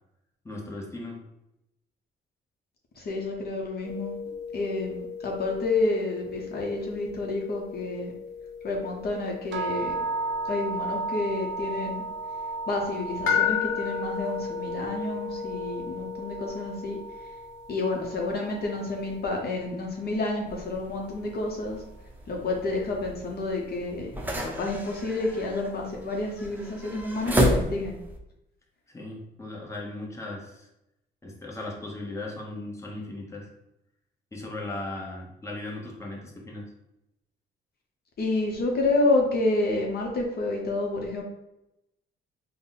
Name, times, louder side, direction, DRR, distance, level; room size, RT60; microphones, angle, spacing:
voice 1, 0.4-1.2 28.9-30.7 31.2-33.5 34.3-36.7, left 2 dB, 15° left, -2 dB, 1.0 m, -37 dB
voice 2, 3.0-4.2 4.5-8.1 8.6-10.0 10.5-12.0 12.7-17.3 17.7-21.8 22.3-24.1 24.4-27.9 38.2-41.2, left 2 dB, 50° left, 0 dB, 0.7 m, -29 dB
sound 1, 3.8-19.3, left 8 dB, 85° left, 0.8 m, -35 dB
sound 2, 9.5-19.6, right 3 dB, 70° right, 0.5 m, -35 dB
sound 3, 20.5-28.2, equal, 10° right, 0.7 m, -31 dB
3.8 x 2.1 x 3.9 m, 0.88 s
cardioid pair, 90°, 20 cm